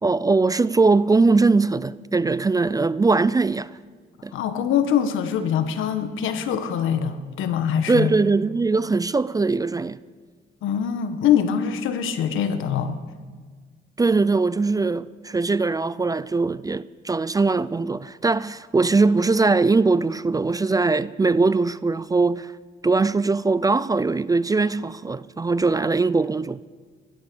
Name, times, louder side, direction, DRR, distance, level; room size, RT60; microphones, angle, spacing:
voice 1, 0.0-3.7 4.2-4.3 7.9-10.0 14.0-22.5 22.8-26.6, right 3 dB, 20° right, 0.4 m, -21 dB
voice 2, 4.3-8.1 10.6-13.0, left 8 dB, 85° left, 1.3 m, -23 dB
16.5 x 12.0 x 6.9 m
cardioid pair, 90°, 20 cm